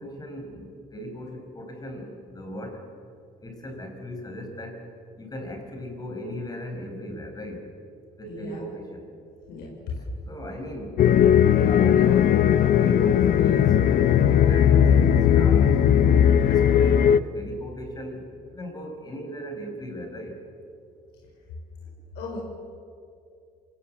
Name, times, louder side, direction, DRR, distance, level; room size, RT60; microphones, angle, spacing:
voice 1, 0.0-2.8 3.4-4.8 5.2-7.7 8.2-9.1 10.2-11.1 11.5-15.8 16.5-20.4, equal, 20° left, 3 dB, 5.5 m, -37 dB
voice 2, 8.3-8.6 9.5-9.7 21.8-21.9 22.1-22.4, left 4 dB, 85° left, -2 dB, 5.0 m, -38 dB
sound 1, 11.0-17.2, left 9 dB, 60° left, 0.8 m, -18 dB
26.5 x 18.5 x 7.8 m, 2.5 s
cardioid pair, 110°, 17 cm